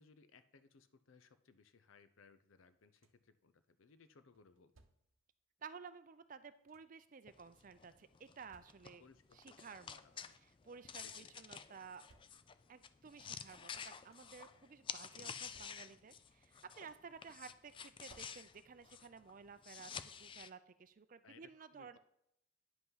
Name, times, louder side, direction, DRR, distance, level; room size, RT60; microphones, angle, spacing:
voice 1, 0.0-4.7 9.0-10.3 11.0-11.3 21.2-22.0, left 4 dB, 85° left, 11 dB, 0.6 m, -65 dB
sound 1, 2.6-3.4 4.3-5.3 6.2-7.1 8.0-9.2 9.8-9.9 10.1-10.7 11.6-12.8 13.7-14.5 15.2-16.2 16.5-17.2 17.9-18.9 20.2-20.3 20.8-21.0, right 3 dB, 85° right, 0.8 m, -71 dB
voice 2, 5.6-9.0 9.3-10.2 10.6-12.0 12.7-19.9 20.2-22.0, right 5 dB, 40° right, 12 dB, 0.4 m, -54 dB
sound 2, 7.3-16.9 17.2-20.5, left 7 dB, 25° left, 0.3 m, -50 dB
9.8 x 5.6 x 5.6 m, 0.77 s
head